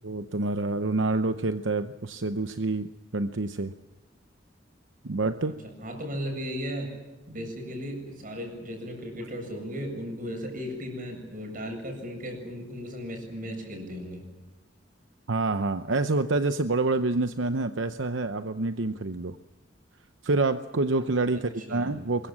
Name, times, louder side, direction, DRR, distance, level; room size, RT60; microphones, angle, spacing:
voice 1, 0.0-2.9 3.1-3.7 5.0-5.5 15.3-19.4 20.2-22.3, right 3 dB, 80° right, 9 dB, 0.8 m, -27 dB
voice 2, 5.8-6.9 7.3-14.2 21.3-21.9, equal, 45° right, 4 dB, 7.8 m, -36 dB
24.5 x 22.5 x 7.4 m, 1.2 s
head